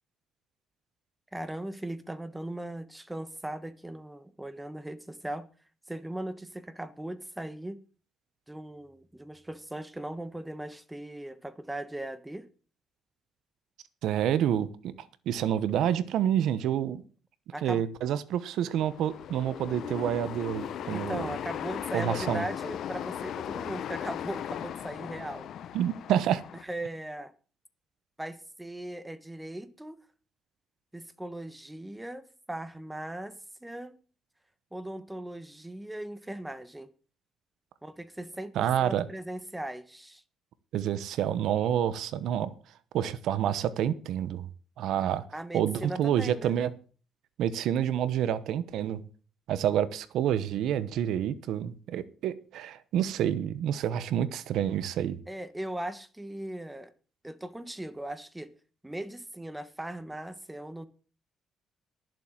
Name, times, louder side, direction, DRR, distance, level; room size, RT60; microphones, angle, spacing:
voice 1, 1.3-5.5 5.9-7.8 8.5-12.4 17.5-17.8 20.9-25.5 26.6-27.3 28.2-30.0 30.9-34.0 34.7-36.9 37.8-40.2 45.3-46.6 55.3-56.9 57.2-58.5 58.8-60.9, right 1 dB, 10° right, 1.4 m, -39 dB
voice 2, 14.0-17.0 17.6-21.3 21.9-22.4 25.7-26.4 38.5-39.1 40.7-42.5 42.9-44.5 44.8-45.2 45.5-46.7 47.4-49.0 49.5-55.2, right 10 dB, 80° right, 1.0 m, -28 dB
sound 1, 18.7-26.6, left 10 dB, 70° left, 0.8 m, -37 dB
11.0 x 7.6 x 7.5 m
cardioid pair, 90°, 0 cm